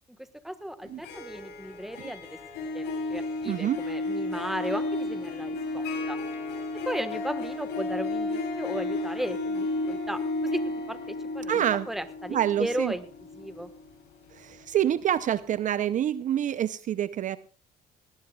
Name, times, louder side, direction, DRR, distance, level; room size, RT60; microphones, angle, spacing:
voice 1, 0.2-6.2 6.7-13.1 13.3-13.7, right 1 dB, ahead, 11 dB, 1.3 m, -36 dB
Harp, 0.8-14.8, left 2 dB, 85° left, 7.5 m, -33 dB
voice 2, 3.4-3.8 11.5-11.9 12.3-12.9 14.3-17.4, right 10 dB, 50° right, 15 dB, 0.6 m, -27 dB
19.0 x 17.5 x 2.3 m, 0.36 s
cardioid pair, 110°, 17 cm